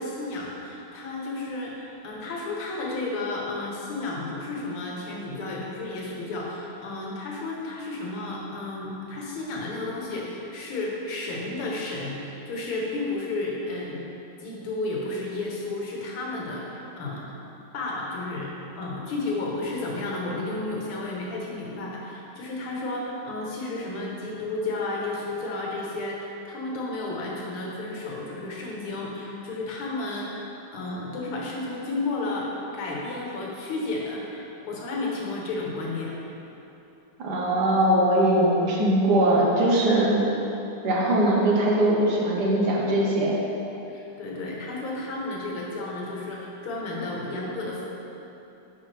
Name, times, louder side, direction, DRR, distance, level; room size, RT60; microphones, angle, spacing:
voice 1, 0.0-14.0 14.4-17.3 17.7-36.2 43.9-47.8, left 2 dB, 80° left, -3 dB, 2.1 m, -32 dB
voice 2, 37.2-40.4 40.8-43.4, right 1 dB, 55° right, -3 dB, 1.5 m, -21 dB
11.0 x 4.7 x 3.3 m, 3.0 s
omnidirectional pair, 2.4 m